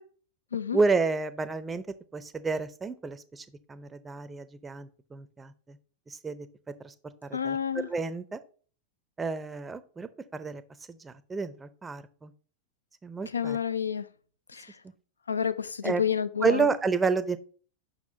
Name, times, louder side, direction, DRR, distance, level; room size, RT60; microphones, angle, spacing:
voice 1, 0.7-1.8 2.1-5.8 6.1-6.5 6.8-6.9 7.2-7.6 7.8-8.4 9.2-10.6 10.9-12.3 13.0-13.6 15.8-16.0 16.4-17.4, right 4 dB, 15° right, 0.6 m, -30 dB
voice 2, 7.3-7.9 13.3-14.0 14.5-14.7 15.3-16.7, left 7 dB, 75° left, 0.5 m, -29 dB
7.3 x 6.0 x 2.7 m
figure-of-eight pair, 90°, 0 cm